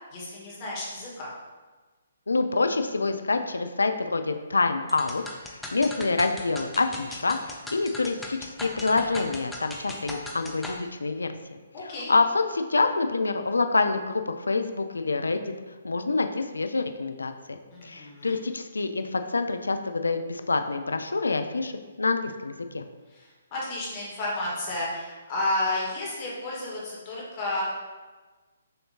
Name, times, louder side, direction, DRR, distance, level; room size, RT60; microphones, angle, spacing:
voice 1, 0.1-1.3 11.7-12.1 17.7-18.4 23.1-27.6, left 1 dB, 35° left, -5 dB, 1.4 m, -32 dB
voice 2, 2.3-5.2 5.5-11.3 11.8-15.5 15.8-17.6 17.8-21.7 22.0-22.8, left 3 dB, 75° left, 7 dB, 0.4 m, -26 dB
sound 1, 4.9-10.8, left 1 dB, 5° left, 0.5 m, -38 dB
6.4 x 2.8 x 2.8 m, 1.3 s
figure-of-eight pair, 130°, 0 cm